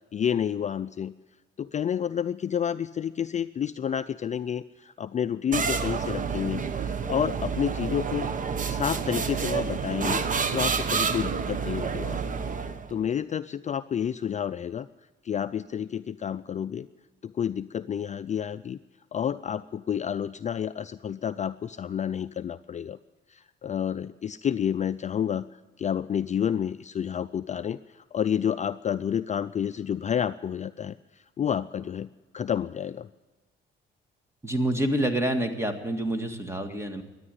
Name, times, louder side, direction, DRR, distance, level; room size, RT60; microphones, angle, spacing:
voice 1, 0.1-1.1 1.6-8.3 8.6-10.2 10.5-14.9 15.2-16.9 17.2-18.8 19.1-23.0 23.3-25.4 25.8-31.0 31.4-32.1 32.3-33.1, left 8 dB, 35° left, 13 dB, 0.4 m, -30 dB
sound 1, 5.5-12.9, right 5 dB, 40° right, 1.0 m, -29 dB
voice 2, 34.4-37.0, right 1 dB, 15° right, 6 dB, 1.9 m, -27 dB
12.5 x 9.7 x 9.8 m, 1.2 s
cardioid pair, 90°, 20 cm